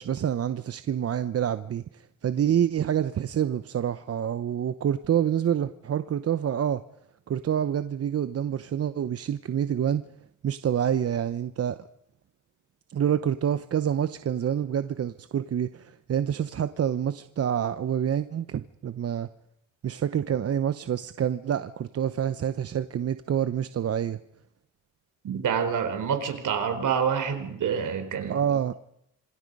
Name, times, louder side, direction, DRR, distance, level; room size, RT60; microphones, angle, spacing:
voice 1, 0.0-6.8 7.3-10.0 10.4-11.8 12.9-19.3 19.8-24.2 28.3-28.7, right 9 dB, 50° right, 0.9 m, -27 dB
voice 2, 25.2-28.8, right 7 dB, 70° right, 4.3 m, -27 dB
27.0 x 24.0 x 5.4 m
cardioid pair, 115°, 32 cm